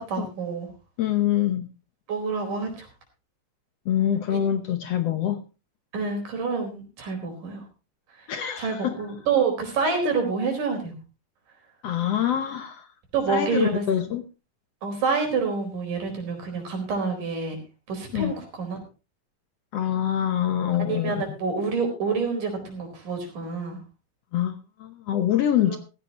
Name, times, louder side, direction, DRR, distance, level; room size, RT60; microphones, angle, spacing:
voice 1, 0.1-0.7 2.1-2.9 4.3-4.4 5.9-7.6 8.2-8.3 8.6-10.9 13.1-13.8 14.8-17.6 17.9-18.8 20.8-23.8 25.7-25.8, right 4 dB, 75° right, 5.9 m, -27 dB
voice 2, 1.0-1.7 3.9-5.4 8.3-9.0 11.8-12.9 13.3-14.2 18.1-18.3 19.7-21.2 24.3-25.8, left 10 dB, 65° left, 1.7 m, -25 dB
15.5 x 15.5 x 3.0 m
omnidirectional pair, 3.7 m